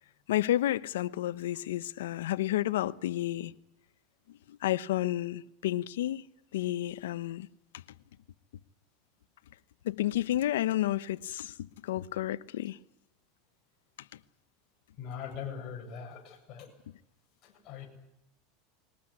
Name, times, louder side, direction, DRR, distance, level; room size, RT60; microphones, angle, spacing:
voice 1, 0.3-3.5 4.5-6.3 6.5-7.5 9.8-12.8, left 13 dB, 90° left, 0.9 m, -31 dB
voice 2, 15.0-16.7 17.4-17.9, left 7 dB, 40° left, 7.6 m, -41 dB
21.5 x 19.0 x 9.8 m
supercardioid pair, 130°, 0 cm